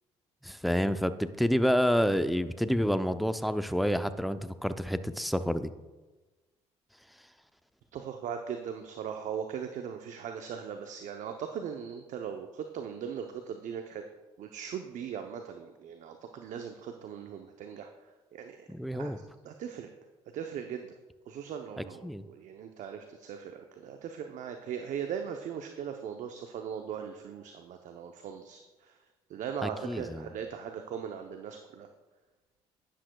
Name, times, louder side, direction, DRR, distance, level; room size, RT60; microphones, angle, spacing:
voice 1, 0.4-5.7 18.7-19.2 22.0-22.2 29.6-30.3, equal, ahead, 11 dB, 0.5 m, -28 dB
voice 2, 7.9-14.0 14.4-17.9 18.3-18.7 18.9-19.1 19.4-19.9 20.3-20.9 21.3-29.0 29.3-31.9, right 8 dB, 60° right, 5 dB, 0.7 m, -39 dB
11.5 x 10.0 x 2.3 m, 1.2 s
hypercardioid pair, 60°, 14 cm